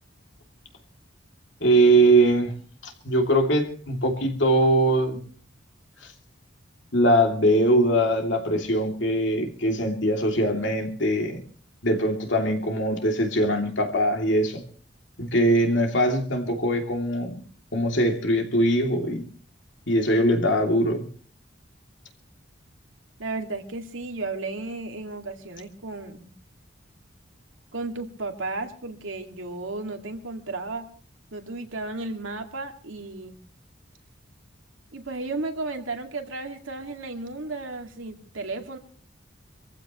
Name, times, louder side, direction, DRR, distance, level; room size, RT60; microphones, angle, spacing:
voice 1, 1.6-2.5 2.8-5.2 6.9-11.4 11.8-14.6 15.2-17.4 17.7-19.2 19.9-21.1, right 1 dB, 65° left, 2.8 m, -22 dB
voice 2, 23.2-26.3 27.7-30.9 31.3-33.4 34.9-38.8, right 3 dB, 85° right, 2.3 m, -34 dB
25.0 x 15.0 x 3.1 m
head